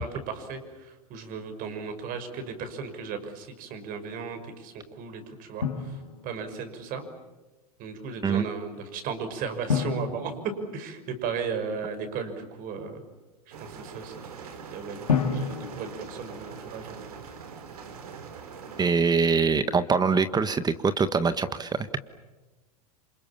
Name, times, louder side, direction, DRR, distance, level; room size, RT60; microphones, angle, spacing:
voice 1, 0.0-5.9 6.2-7.1 7.8-10.3 10.7-13.0 13.6-14.1 14.7-17.1, right 5 dB, 45° right, 8 dB, 6.0 m, -36 dB
Drum, 5.6-6.7 9.7-11.5 15.1-17.1, left 5 dB, 90° left, 3.1 m, -31 dB
sound 1, 13.5-18.9, right 6 dB, 75° right, 4.5 m, -43 dB
voice 2, 18.8-21.9, right 5 dB, 20° right, 12 dB, 1.5 m, -23 dB
29.0 x 27.0 x 7.3 m, 1.2 s
hypercardioid pair, 95°, 19 cm